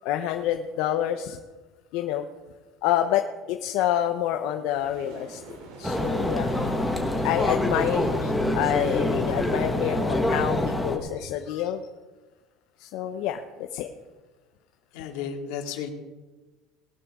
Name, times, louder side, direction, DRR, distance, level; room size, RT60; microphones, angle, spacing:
voice 1, 0.0-1.4 1.9-2.3 2.8-6.5 7.2-11.9 12.8-13.9, left 11 dB, 60° left, 6 dB, 0.7 m, -28 dB
sound 1, 4.7-9.1, right 2 dB, 60° right, 3.2 m, -45 dB
sound 2, 5.8-11.0, left 1 dB, ahead, 1.4 m, -26 dB
voice 2, 14.9-15.9, left 7 dB, 80° left, 3 dB, 2.2 m, -34 dB
19.5 x 12.5 x 3.7 m, 1.3 s
cardioid pair, 170°, 0 cm